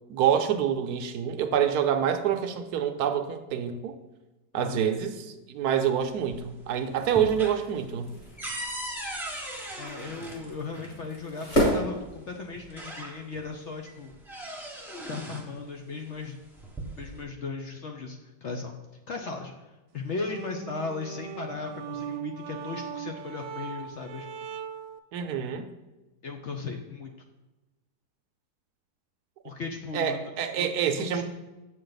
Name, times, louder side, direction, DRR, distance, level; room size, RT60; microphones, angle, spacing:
voice 1, 0.1-4.0 4.5-8.1 25.1-25.7 29.9-31.2, right 8 dB, 70° right, 7 dB, 1.1 m, -27 dB
voice 2, 4.5-4.8 9.8-14.1 15.1-16.4 17.0-18.7 19.1-24.3 26.2-27.1 29.4-30.3 30.6-30.7 30.9-31.2, left 4 dB, 60° left, 3 dB, 0.7 m, -37 dB
sound 1, 6.0-6.6 6.9-11.0 12.0-12.1 12.6-13.5 13.9-15.5 16.4-17.2, right 1 dB, ahead, 0.9 m, -38 dB
sound 2, 6.8-12.8, right 1 dB, 40° left, 2.8 m, -33 dB
sound 3, 19.9-25.0, right 7 dB, 85° right, 1.3 m, -39 dB
7.8 x 6.5 x 4.0 m, 1.1 s
omnidirectional pair, 1.9 m